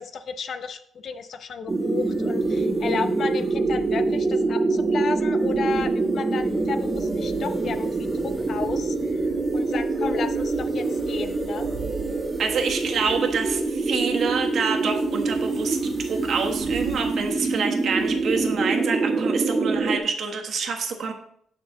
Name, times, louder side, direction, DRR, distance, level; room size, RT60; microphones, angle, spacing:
voice 1, 0.0-11.6, left 6 dB, 60° left, 9 dB, 0.7 m, -33 dB
sound 1, 1.7-20.0, right 3 dB, 30° right, 1.4 m, -25 dB
voice 2, 12.4-21.1, right 5 dB, 60° right, 3 dB, 1.3 m, -27 dB
7.4 x 5.9 x 3.9 m, 0.65 s
cardioid pair, 90°, 0 cm